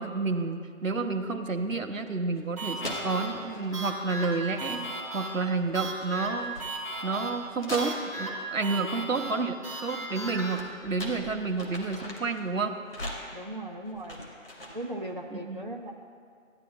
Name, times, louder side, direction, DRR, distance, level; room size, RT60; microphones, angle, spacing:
voice 1, 0.0-4.8 5.1-6.5 7.0-9.5 9.8-12.8 15.3-15.6, right 3 dB, 75° right, 6 dB, 0.9 m, -30 dB
sound 1, 2.4-2.5 2.8-3.8 4.5-5.0 5.2-8.4 10.0-12.4 12.9-15.0, left 1 dB, 45° left, 1.7 m, -41 dB
sound 2, 2.6-10.6, right 2 dB, 15° right, 0.9 m, -37 dB
sound 3, 3.3-5.4, left 1 dB, 90° left, 1.2 m, -52 dB
voice 2, 8.7-9.4 13.3-14.2 14.7-15.9, right 1 dB, 35° right, -1 dB, 0.4 m, -38 dB
15.0 x 9.7 x 2.2 m, 2.1 s
figure-of-eight pair, 160°, 40 cm